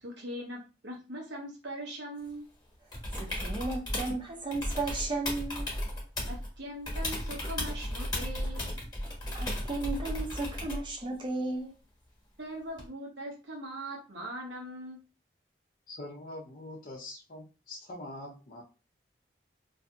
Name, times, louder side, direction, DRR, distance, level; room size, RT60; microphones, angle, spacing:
voice 1, 0.0-2.4 6.3-8.7 12.4-15.0, right 1 dB, 80° right, 0.9 m, -41 dB
sound 1, 2.9-4.2 4.5-6.5 6.8-10.9 12.8-12.9, left 1 dB, 20° left, 1.0 m, -35 dB
voice 2, 3.1-5.7 9.3-11.7, right 2 dB, 25° right, 0.5 m, -34 dB
voice 3, 15.9-18.6, left 1 dB, 50° left, 0.5 m, -44 dB
2.6 x 2.5 x 2.3 m
head